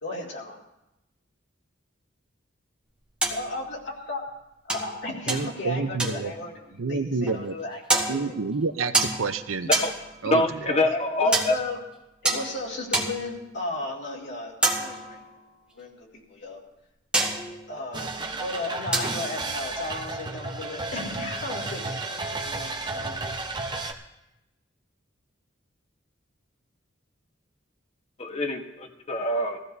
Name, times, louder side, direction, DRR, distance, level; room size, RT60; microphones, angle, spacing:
voice 1, 0.0-0.6 3.3-4.2 4.6-6.5 6.9-8.3 10.9-11.8 12.2-15.2 15.7-16.6 17.7-23.1, left 2 dB, 60° left, -4 dB, 2.5 m, -35 dB
sound 1, 3.2-3.7 4.7-5.7 6.0-6.6 7.3-7.5 7.9-8.6 8.9-10.3 11.3-11.8 12.3-13.4 14.6-15.5 17.1-17.8 18.9-19.4, right 2 dB, 5° right, 1.3 m, -28 dB
voice 2, 5.3-6.3 6.8-7.6 8.1-9.7 10.2-10.9, right 4 dB, 90° right, 10 dB, 0.7 m, -29 dB
voice 3, 10.3-11.6 28.2-29.6, left 2 dB, 30° left, 4 dB, 1.3 m, -25 dB
sound 2, 17.9-23.9, right 3 dB, 25° right, 0.9 m, -33 dB
21.5 x 15.5 x 2.7 m, 0.92 s
head